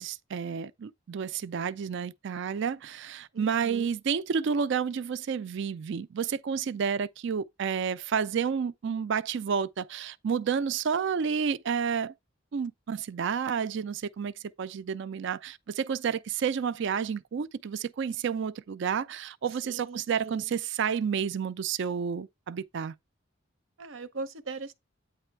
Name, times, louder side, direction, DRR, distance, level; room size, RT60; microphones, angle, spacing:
voice 1, 0.0-12.1 12.5-14.3 14.6-22.9, right 6 dB, 65° right, 0.4 m, -30 dB
voice 2, 3.3-3.9 19.6-20.5 23.8-24.7, right 3 dB, 85° right, 0.8 m, -40 dB
8.9 x 3.2 x 4.6 m
head